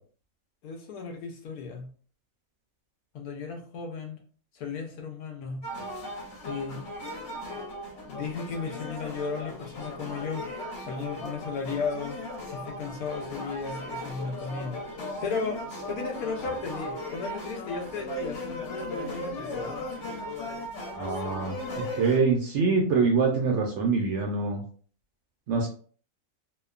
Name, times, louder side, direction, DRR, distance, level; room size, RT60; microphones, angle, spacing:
voice 1, 0.6-1.9 3.1-4.2 4.5-5.6 6.4-6.8 8.0-10.5 10.9-12.2 12.5-14.8 15.2-15.6 15.9-19.7, left 5 dB, 75° left, 3 dB, 1.1 m, -35 dB
sound 1, 5.6-22.2, left 1 dB, 55° left, 1.1 m, -37 dB
voice 2, 21.0-21.5 21.9-24.6 25.5-25.7, right 4 dB, 65° right, 1 dB, 0.7 m, -24 dB
2.9 x 2.1 x 2.3 m, 0.43 s
omnidirectional pair, 1.6 m